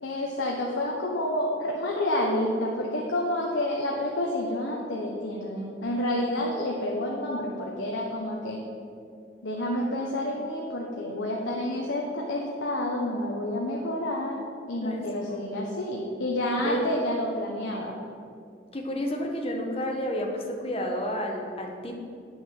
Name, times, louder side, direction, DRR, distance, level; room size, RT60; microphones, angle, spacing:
voice 1, 0.0-8.6 9.4-18.0, left 1 dB, 85° left, -2 dB, 1.2 m, -29 dB
voice 2, 16.6-17.1 18.7-22.0, equal, 30° left, 1 dB, 1.3 m, -30 dB
9.3 x 6.8 x 7.7 m, 2.4 s
head